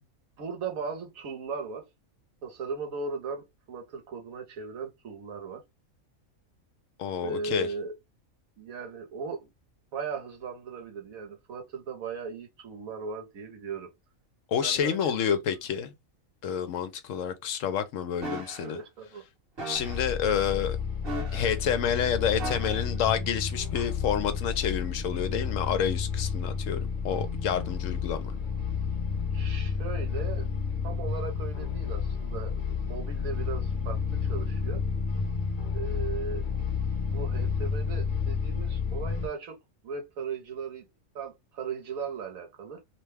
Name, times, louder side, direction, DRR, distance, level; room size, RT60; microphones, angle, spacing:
voice 1, 0.4-1.9 2.4-5.6 7.2-7.9 8.6-9.5 9.9-13.9 14.6-15.1 18.6-19.2 29.3-30.5 30.8-34.0 34.3-34.8 35.7-36.5 37.0-39.6 39.8-40.9 41.1-42.8, right 5 dB, 75° right, 1.3 m, -37 dB
voice 2, 7.0-7.7 14.5-15.9 16.4-18.8 19.7-20.8 21.3-28.3, left 8 dB, 70° left, 0.9 m, -29 dB
sound 1, 18.2-18.7 19.6-20.1 21.0-21.7 22.4-23.0 23.7-23.9, right 1 dB, 45° right, 1.3 m, -37 dB
sound 2, 19.7-39.3, left 6 dB, 45° left, 0.7 m, -31 dB
2.9 x 2.2 x 3.2 m
omnidirectional pair, 1.5 m